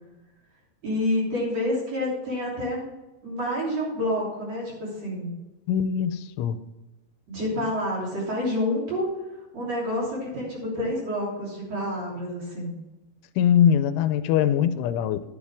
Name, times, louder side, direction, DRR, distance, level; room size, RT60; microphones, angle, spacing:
voice 1, 0.8-2.9 3.2-5.3 7.3-9.1 9.5-12.7, left 1 dB, 40° right, -4 dB, 3.7 m, -28 dB
voice 2, 5.7-6.6 13.4-15.2, left 9 dB, 90° left, 12 dB, 3.1 m, -22 dB
11.5 x 9.7 x 3.5 m, 1.1 s
omnidirectional pair, 5.4 m